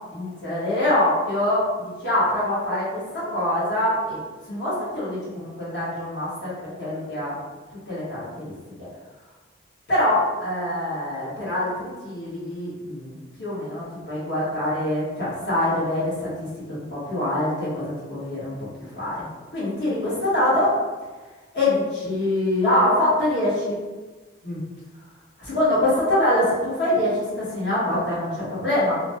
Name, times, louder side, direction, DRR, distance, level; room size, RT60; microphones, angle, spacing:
voice 1, 0.1-4.2 4.5-6.5 6.8-7.3 7.9-8.5 8.8-8.9 9.9-18.5 19.0-19.3 19.5-20.7 21.5-23.8 24.4-24.6 25.4-29.0, left 1 dB, 60° left, -10 dB, 1.5 m, -24 dB
3.1 x 2.2 x 2.9 m, 1.3 s
head